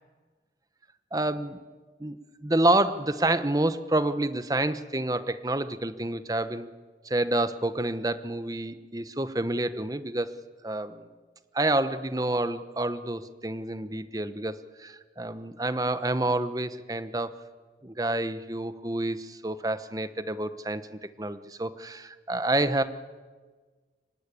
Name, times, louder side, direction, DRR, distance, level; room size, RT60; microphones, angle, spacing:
voice 1, 1.1-1.6 2.0-2.2 2.4-6.7 7.0-10.3 10.6-11.1 11.5-17.3 17.8-22.8, right 2 dB, 20° right, 12 dB, 1.0 m, -28 dB
25.0 x 19.0 x 10.0 m, 1.4 s
head